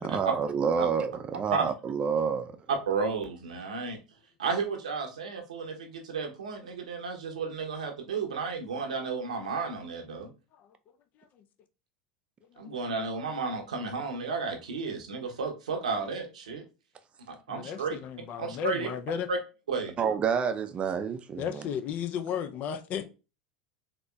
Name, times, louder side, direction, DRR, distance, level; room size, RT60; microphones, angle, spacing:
voice 1, 0.0-2.6 20.0-21.6, right 6 dB, 30° right, 0.5 m, -28 dB
voice 2, 2.9-4.0 4.4-10.3 12.6-16.6 17.3-18.0 18.4-18.9 19.3-19.4 19.7-19.9, right 4 dB, 85° right, 0.8 m, -33 dB
voice 3, 17.5-19.3 21.4-23.1, left 8 dB, 45° left, 0.5 m, -34 dB
4.0 x 2.9 x 2.3 m
hypercardioid pair, 85°, 4 cm